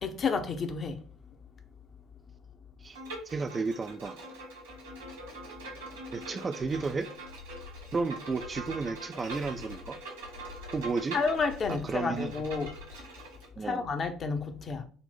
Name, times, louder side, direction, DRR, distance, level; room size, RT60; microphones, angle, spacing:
voice 1, 0.0-1.0 11.1-12.7 13.6-14.8, left 4 dB, 35° left, 0.7 m, -30 dB
Bowed string instrument, 2.9-13.5, right 2 dB, 70° right, 1.4 m, -44 dB
voice 2, 3.3-4.2 6.1-7.1 7.9-10.0 10.7-11.2 11.7-12.3 13.6-13.8, right 4 dB, 25° right, 0.3 m, -32 dB
sound 1, 6.6-13.0, left 7 dB, 60° left, 1.7 m, -49 dB
4.0 x 2.0 x 4.1 m
figure-of-eight pair, 60°, 0 cm